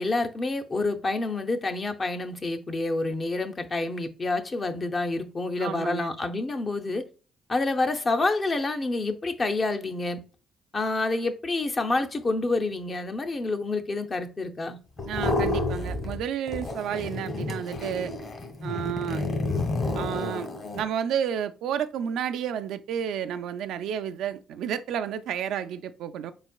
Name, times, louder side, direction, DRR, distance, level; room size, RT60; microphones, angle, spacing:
voice 1, 0.0-7.0 7.5-10.2 10.7-14.8, left 2 dB, 35° left, 0.6 m, -28 dB
voice 2, 5.6-6.1 15.0-18.1 18.6-19.2 19.9-20.5 20.7-26.3, right 9 dB, 85° right, 0.3 m, -31 dB
sound 1, 15.0-16.2 16.5-20.8, left 2 dB, 50° left, 1.4 m, -30 dB
4.3 x 4.0 x 2.3 m
cardioid pair, 90°, 0 cm